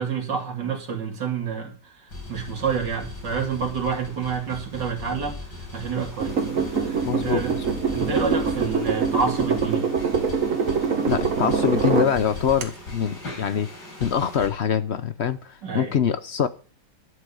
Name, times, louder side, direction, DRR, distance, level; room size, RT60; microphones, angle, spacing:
voice 1, 0.0-7.6 7.9-9.8 15.6-15.9, right 5 dB, 80° right, 2.8 m, -29 dB
sound 1, 2.1-14.5, left 2 dB, 85° left, 4.7 m, -38 dB
sound 2, 6.2-12.1 12.6-12.7, right 5 dB, 50° right, 1.7 m, -24 dB
voice 2, 7.0-7.5 11.0-13.7 14.0-16.5, left 8 dB, 55° left, 0.7 m, -24 dB
12.5 x 6.4 x 8.4 m
omnidirectional pair, 1.9 m